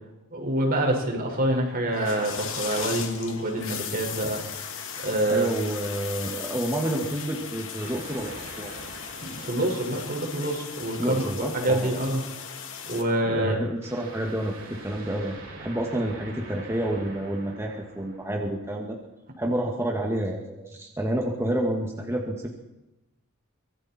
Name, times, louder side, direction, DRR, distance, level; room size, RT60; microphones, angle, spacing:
voice 1, 0.3-4.4 5.0-5.5 9.2-12.2 12.9-13.6, right 1 dB, 45° right, 1 dB, 5.5 m, -26 dB
sound 1, 1.9-13.0, left 7 dB, 65° left, 2.9 m, -37 dB
voice 2, 5.3-8.7 11.0-12.0 13.2-19.0 19.4-22.5, right 1 dB, 10° right, 0 dB, 2.3 m, -29 dB
sound 2, 7.8-10.9 13.8-19.0, right 2 dB, 70° right, 8.0 m, -45 dB
25.0 x 22.5 x 4.5 m, 0.96 s
head